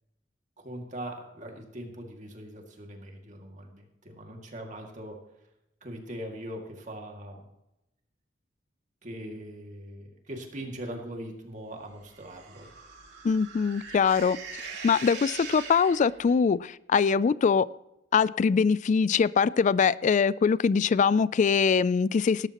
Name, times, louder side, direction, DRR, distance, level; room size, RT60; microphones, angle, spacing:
voice 1, 0.6-5.2 5.8-7.4 9.0-12.7, right 1 dB, 40° right, 2.2 m, -41 dB
sound 1, 12.1-16.4, right 5 dB, 60° right, 2.6 m, -42 dB
voice 2, 13.2-14.4 14.8-17.7 18.1-22.5, left 6 dB, 40° left, 0.3 m, -23 dB
18.0 x 12.5 x 3.0 m
head